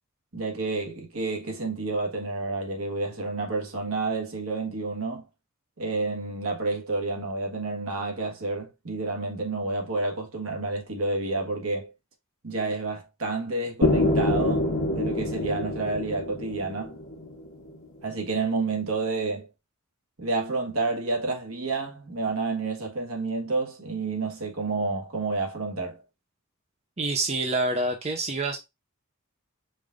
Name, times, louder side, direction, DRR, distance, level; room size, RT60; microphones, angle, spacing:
voice 1, 0.3-5.2 5.8-11.9 12.4-14.7 14.9-17.0 18.0-19.5 20.2-26.0, right 3 dB, 75° right, 1.5 m, -29 dB
sound 1, 13.8-17.7, left 1 dB, 70° left, 1.2 m, -26 dB
voice 2, 27.0-28.6, right 2 dB, 30° right, 0.7 m, -27 dB
5.2 x 2.6 x 3.5 m
head